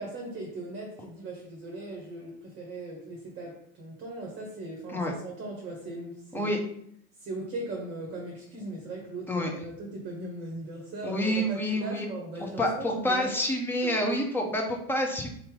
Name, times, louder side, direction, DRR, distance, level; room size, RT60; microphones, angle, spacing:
voice 1, 0.0-6.5 7.2-13.3 13.8-13.9, right 2 dB, 25° right, -1 dB, 1.0 m, -39 dB
voice 2, 11.0-12.1 12.4-15.3, left 1 dB, 5° left, 1 dB, 0.7 m, -28 dB
4.0 x 2.9 x 3.7 m, 0.68 s
figure-of-eight pair, 85°, 44 cm